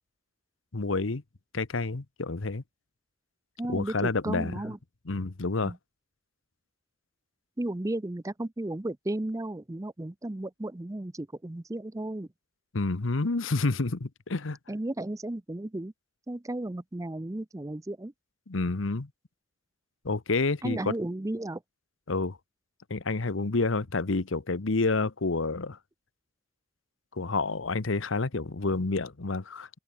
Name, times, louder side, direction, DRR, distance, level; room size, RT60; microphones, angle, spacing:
voice 1, 0.7-1.2 1.5-2.6 3.7-4.5 5.1-5.7 12.7-14.6 18.5-19.1 20.0-20.9 22.1-22.4 22.9-25.8 27.1-29.7, left 3 dB, 90° left, 1.1 m, -29 dB
voice 2, 3.6-4.8 5.6-5.8 7.6-12.3 14.7-15.9 16.3-18.1 20.6-21.6, right 1 dB, 15° right, 0.5 m, -34 dB
head